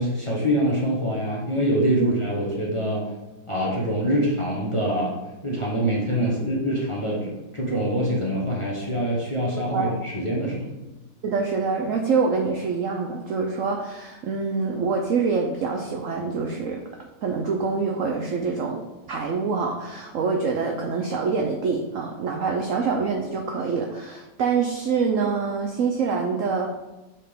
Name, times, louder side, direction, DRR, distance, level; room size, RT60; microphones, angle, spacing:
voice 1, 0.0-3.1 3.5-5.1 5.4-10.7, equal, 20° left, -5 dB, 1.0 m, -25 dB
voice 2, 11.2-16.8 17.2-26.7, right 5 dB, 70° right, 1 dB, 0.8 m, -25 dB
7.3 x 4.3 x 3.6 m, 1.0 s
omnidirectional pair, 2.0 m